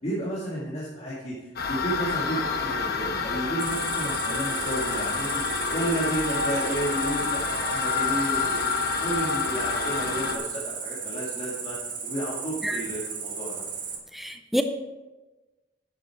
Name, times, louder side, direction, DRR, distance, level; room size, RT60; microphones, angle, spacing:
voice 1, 0.0-13.6, right 1 dB, 35° left, -8 dB, 2.1 m, -32 dB
sound 1, 1.6-10.4, left 5 dB, 55° left, 1.1 m, -28 dB
Cricket, 3.6-14.0, right 6 dB, 45° right, 1.8 m, -35 dB
voice 2, 14.1-14.6, equal, ahead, 6 dB, 0.5 m, -27 dB
10.5 x 7.7 x 4.6 m, 1.1 s
head